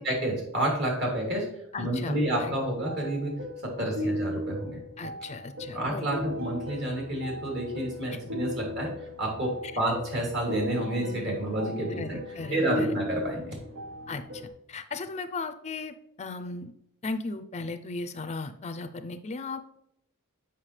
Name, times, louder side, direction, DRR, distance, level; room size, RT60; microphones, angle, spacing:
voice 1, 0.0-1.5 1.8-4.8 5.7-8.9 9.2-12.2 12.5-13.6, right 1 dB, 55° right, -1 dB, 2.9 m, -29 dB
voice 2, 1.7-2.5 3.8-4.1 5.0-6.0 8.1-8.2 11.9-13.0 14.1-16.7 17.0-19.8, left 3 dB, 30° left, 10 dB, 0.4 m, -37 dB
sound 1, 2.1-14.5, equal, 90° right, 1.0 m, -37 dB
7.4 x 5.6 x 3.2 m, 0.76 s
head